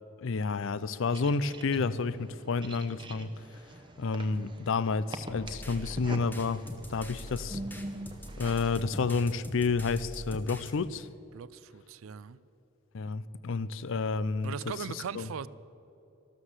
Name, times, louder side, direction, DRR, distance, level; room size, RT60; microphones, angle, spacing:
voice 1, 0.2-3.3 4.0-6.6 6.9-7.6 8.4-11.1 12.9-15.3, left 4 dB, 60° left, 0.5 m, -30 dB
sound 1, 1.1-8.8, right 1 dB, 20° right, 0.8 m, -44 dB
sound 2, 5.3-10.7, equal, 10° left, 1.2 m, -42 dB
voice 2, 11.3-12.4 14.4-15.5, right 7 dB, 65° right, 0.4 m, -39 dB
13.0 x 12.5 x 7.4 m
head